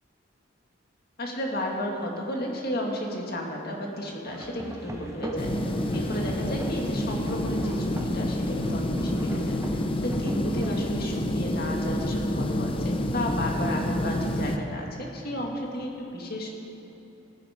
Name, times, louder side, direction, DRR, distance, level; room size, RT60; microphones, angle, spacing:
voice 1, 1.2-16.5, left 1 dB, 50° left, 0 dB, 2.0 m, -33 dB
sound 1, 4.2-10.7, right 1 dB, 15° right, 0.9 m, -38 dB
sound 2, 5.4-14.6, left 1 dB, 25° left, 0.7 m, -28 dB
18.5 x 10.5 x 5.1 m, 2.9 s
head